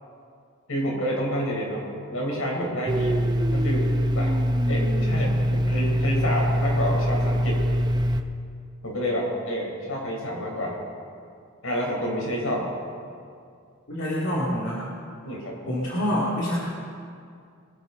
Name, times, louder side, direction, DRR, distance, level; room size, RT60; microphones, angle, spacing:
voice 1, 0.7-1.8 2.1-3.2 3.5-3.9 4.1-4.4 4.7-7.6 8.8-10.8 11.6-12.7 15.2-15.6, equal, 80° left, -2 dB, 4.5 m, -28 dB
Domestic sounds home sounds, 2.9-8.2, equal, 20° right, 0.7 m, -23 dB
voice 2, 13.9-14.8 15.7-16.6, equal, 65° left, -7 dB, 2.6 m, -26 dB
23.0 x 11.5 x 4.0 m, 2.3 s
head